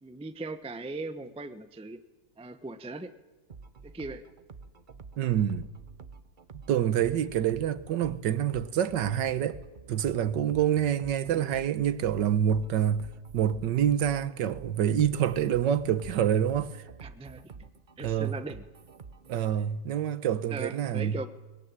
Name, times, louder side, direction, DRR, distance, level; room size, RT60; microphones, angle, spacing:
voice 1, 0.0-2.0 2.4-3.1 3.8-4.2 11.3-11.6 17.0-17.5 18.0-18.6 20.5-21.3, right 3 dB, 5° right, 0.4 m, -39 dB
sound 1, 3.5-19.5, right 5 dB, 40° right, 0.7 m, -49 dB
voice 2, 5.2-5.7 6.7-9.6 9.9-16.8 18.0-18.4 19.3-21.2, right 9 dB, 75° right, 1.6 m, -27 dB
22.0 x 21.0 x 8.9 m
omnidirectional pair, 2.0 m